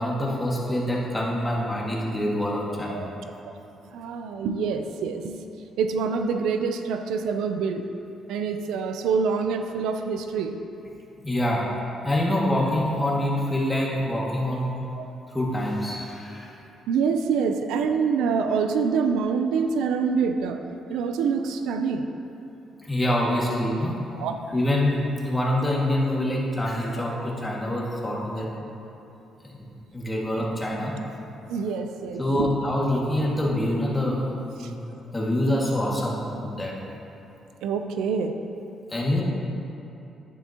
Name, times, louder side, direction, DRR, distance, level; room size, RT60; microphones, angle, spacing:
voice 1, 0.0-3.1 11.2-11.6 12.0-14.7 15.3-16.5 22.8-24.0 24.5-28.5 29.9-30.9 32.2-34.2 34.6-34.7 35.1-36.7 38.9-39.2, left 1 dB, 15° left, -4 dB, 2.0 m, -25 dB
voice 2, 3.9-5.5 5.8-7.8 8.3-10.6 14.9-15.1 16.9-20.6 20.9-22.1 24.1-24.4 31.5-32.5 34.6-34.7 37.6-38.3, right 5 dB, 90° right, 7 dB, 0.5 m, -26 dB
10.5 x 9.9 x 2.9 m, 2.8 s
cardioid pair, 90°, 0 cm